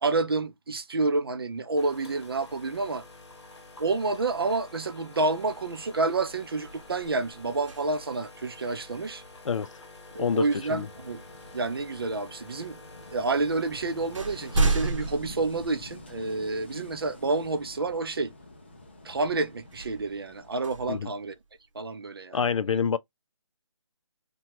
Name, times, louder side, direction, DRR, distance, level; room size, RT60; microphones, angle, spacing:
voice 1, 0.0-3.0 3.8-9.2 10.1-11.2 11.5-12.8 13.1-18.3 19.0-21.3 21.7-22.4, right 3 dB, 50° right, 0.5 m, -29 dB
sound 1, 1.8-14.9, left 2 dB, 60° left, 0.9 m, -49 dB
sound 2, 6.2-8.3 10.4-10.6 11.4-12.2 13.1-13.2 13.6-16.4 16.9-17.0 19.6-21.8, right 3 dB, 85° right, 0.8 m, -32 dB
voice 2, 10.2-10.9 20.9-21.1 22.3-23.0, left 6 dB, 85° left, 0.4 m, -27 dB
Wind / Waves surf, 10.7-20.7, left 2 dB, 20° left, 0.4 m, -47 dB
2.8 x 2.3 x 2.9 m
hypercardioid pair, 170°, 16 cm